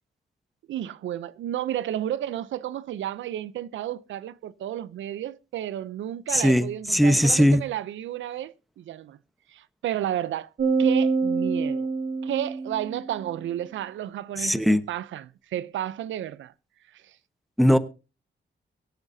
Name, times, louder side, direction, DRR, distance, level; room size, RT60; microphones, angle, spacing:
voice 1, 0.7-9.2 9.5-10.5 10.8-11.9 12.2-16.5 16.9-17.1, right 11 dB, 90° right, 0.6 m, -32 dB
voice 2, 6.3-7.6 14.4-14.8 17.6-17.8, equal, ahead, 1.0 m, -19 dB
sound 1, 10.6-13.1, right 4 dB, 60° right, 2.7 m, -25 dB
24.0 x 8.1 x 2.7 m
cardioid pair, 80°, 19 cm